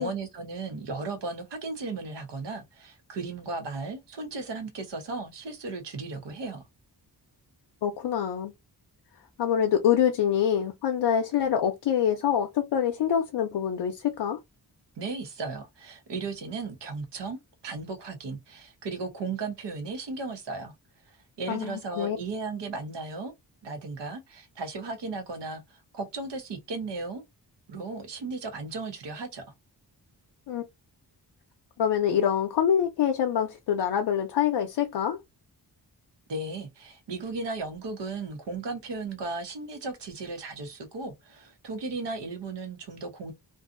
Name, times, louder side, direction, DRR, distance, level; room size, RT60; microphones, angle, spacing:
voice 1, 0.0-6.6 15.0-20.7 21.1-23.3 23.6-27.2 27.7-29.4 36.3-43.3, right 3 dB, 85° right, 0.9 m, -36 dB
voice 2, 7.8-8.5 9.4-14.4 21.5-22.2 30.5-30.6 31.8-35.2, left 9 dB, 80° left, 0.5 m, -25 dB
2.6 x 2.3 x 2.4 m
wide cardioid pair, 175°, 41 cm